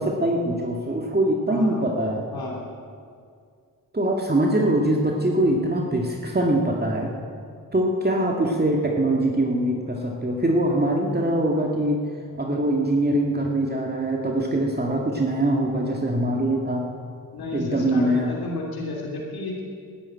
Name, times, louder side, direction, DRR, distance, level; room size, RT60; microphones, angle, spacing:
voice 1, 0.0-2.2 3.9-7.1 7.7-12.0 12.3-16.9 17.5-18.3, right 1 dB, 25° right, 0 dB, 2.0 m, -23 dB
voice 2, 1.5-1.9 2.3-2.6 17.3-19.6, left 2 dB, 85° left, -2 dB, 2.9 m, -32 dB
13.0 x 11.0 x 9.1 m, 2.3 s
cardioid pair, 55°, 36 cm